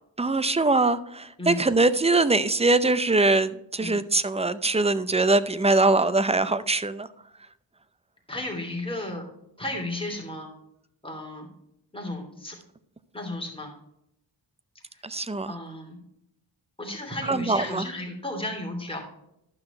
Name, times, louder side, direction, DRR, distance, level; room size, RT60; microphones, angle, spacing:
voice 1, 0.2-7.1 15.0-15.5 17.3-17.8, right 2 dB, 15° right, 14 dB, 0.5 m, -22 dB
voice 2, 8.3-9.2 9.6-10.5 11.0-11.5 11.9-12.6 13.1-13.7 14.9-15.0 15.5-16.0 16.8-19.0, left 1 dB, 10° left, 0 dB, 3.0 m, -33 dB
12.0 x 5.8 x 4.3 m, 0.78 s
wide cardioid pair, 75°, 46 cm